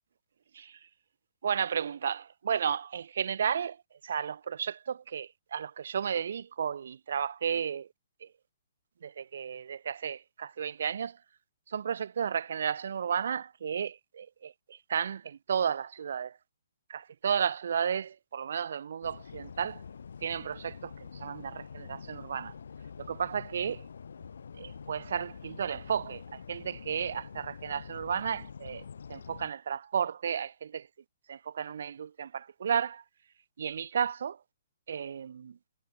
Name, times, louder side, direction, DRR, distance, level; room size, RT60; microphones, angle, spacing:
voice 1, 1.4-3.8 4.0-7.9 8.2-8.3 9.0-11.2 11.7-16.4 16.9-19.8 20.2-22.5 23.0-23.9 24.6-30.9 31.3-33.0 33.6-34.4 34.9-35.6, right 7 dB, 65° right, 0.7 m, -33 dB
sound 1, 19.0-29.5, left 6 dB, 80° left, 0.9 m, -46 dB
hypercardioid pair, 160°, 0 cm